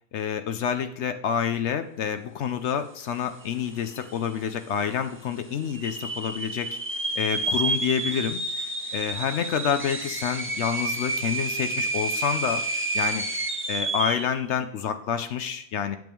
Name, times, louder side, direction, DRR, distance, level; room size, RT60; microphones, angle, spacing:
voice 1, 0.1-6.8 7.2-13.2 13.7-16.0, left 8 dB, 70° left, 8 dB, 0.9 m, -28 dB
sound 1, 3.4-3.5 3.7-4.3 4.8-4.9 5.6-14.4, right 2 dB, 15° right, 0.6 m, -29 dB
9.1 x 7.4 x 3.5 m, 0.75 s
omnidirectional pair, 1.3 m